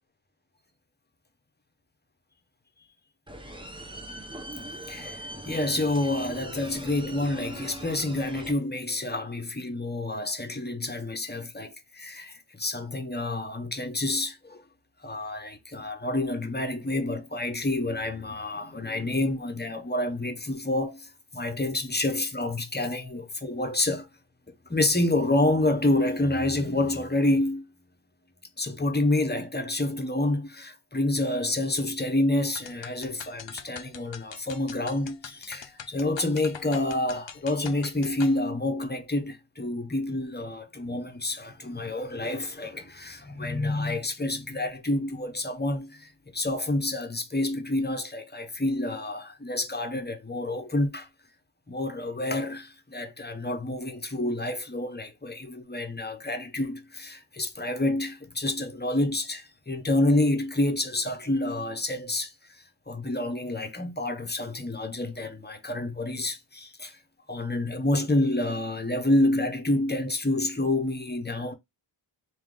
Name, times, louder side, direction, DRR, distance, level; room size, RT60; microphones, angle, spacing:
sound 1, 3.3-8.5, right 1 dB, 10° right, 0.7 m, -40 dB
voice 1, 4.7-14.6 15.0-24.1 24.5-27.6 28.6-51.1 51.7-67.0 67.3-71.5, left 1 dB, 20° left, 0.8 m, -28 dB
sound 2, 32.5-38.4, left 8 dB, 60° left, 0.6 m, -43 dB
3.5 x 2.8 x 3.7 m
wide cardioid pair, 65°, 50 cm